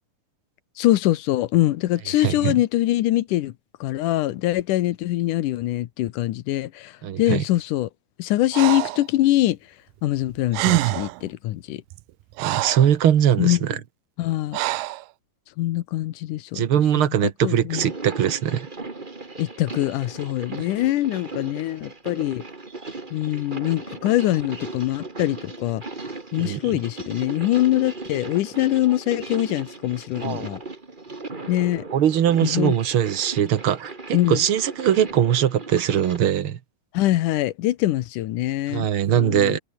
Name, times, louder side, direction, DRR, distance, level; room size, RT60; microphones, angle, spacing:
voice 1, 0.8-3.5 3.8-7.9 8.2-9.6 10.0-11.8 13.4-13.6 14.2-14.6 15.6-16.6 17.0-17.9 19.4-22.4 23.1-25.8 26.3-30.6 31.5-31.8 32.4-32.8 34.1-34.4 36.9-38.9 39.2-39.6, left 15 dB, 75° left, 2.4 m, -23 dB
voice 2, 2.2-2.5 7.0-7.4 12.4-13.8 16.5-18.7 26.4-26.6 30.2-30.5 31.9-36.6 38.7-39.6, right 10 dB, 55° right, 1.6 m, -21 dB
Breathing, 8.5-9.1 10.2-10.3 10.5-11.2 11.9-12.9 14.5-15.0, right 18 dB, 90° right, 2.4 m, -25 dB
sound 1, 17.6-36.2, right 3 dB, 20° right, 1.7 m, -37 dB
omnidirectional pair, 3.9 m